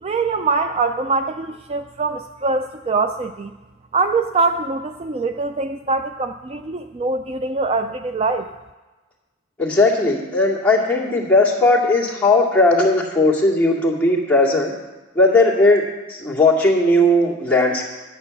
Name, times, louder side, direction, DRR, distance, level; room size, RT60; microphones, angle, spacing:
voice 1, 0.0-3.5 3.9-8.5, right 3 dB, 30° right, 8 dB, 0.3 m, -23 dB
voice 2, 9.6-14.7 15.1-15.8 16.1-17.9, left 2 dB, 5° left, -4 dB, 2.2 m, -17 dB
9.9 x 9.0 x 7.0 m, 1.2 s
head